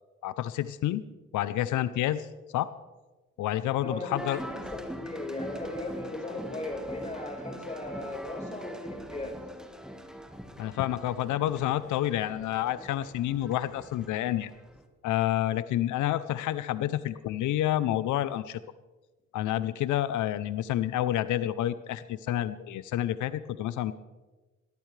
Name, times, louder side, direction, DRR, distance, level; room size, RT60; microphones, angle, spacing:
voice 1, 0.2-1.0 1.3-2.3 2.5-2.7 3.4-4.4 10.6-14.5 15.0-18.6 19.3-23.9, left 13 dB, 80° left, 14 dB, 0.6 m, -29 dB
voice 2, 3.8-9.4, left 2 dB, 25° left, 1 dB, 4.5 m, -37 dB
sound 1, 4.2-14.9, equal, ahead, 1.6 m, -43 dB
21.0 x 14.0 x 3.3 m, 1.2 s
cardioid pair, 90°, 30 cm